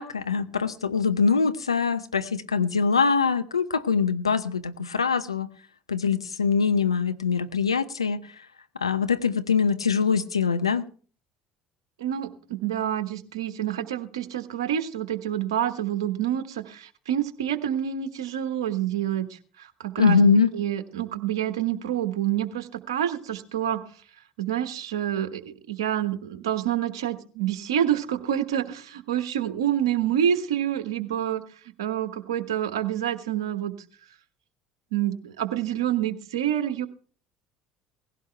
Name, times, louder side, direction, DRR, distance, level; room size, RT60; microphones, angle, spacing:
voice 1, 0.0-5.5 5.9-8.2 8.8-10.8 20.0-20.5, left 5 dB, 90° left, 10 dB, 0.7 m, -23 dB
voice 2, 12.0-20.2 20.5-23.8 24.4-31.4 31.8-33.7 34.9-36.9, right 10 dB, 75° right, 10 dB, 1.2 m, -27 dB
18.0 x 16.0 x 3.4 m, 0.41 s
figure-of-eight pair, 60°, 3 cm